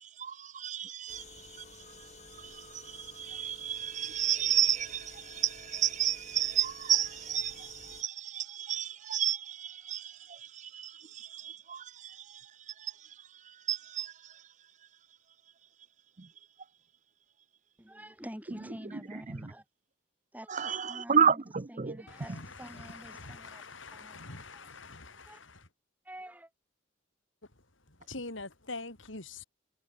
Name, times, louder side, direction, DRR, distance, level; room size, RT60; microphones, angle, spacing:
voice 1, 0.2-1.2 2.5-10.1 10.6-12.2 13.7-14.1 20.5-22.0, right 9 dB, 35° right, 0.6 m, -31 dB
sound 1, 1.1-8.0, left 4 dB, 35° left, 5.5 m, -52 dB
voice 2, 17.8-19.6 20.3-23.6 23.9-24.8 25.3-25.4 26.1-26.5, equal, 10° right, 5.3 m, -47 dB
voice 3, 22.1-25.7 28.1-29.4, left 3 dB, 70° left, 4.2 m, -44 dB
head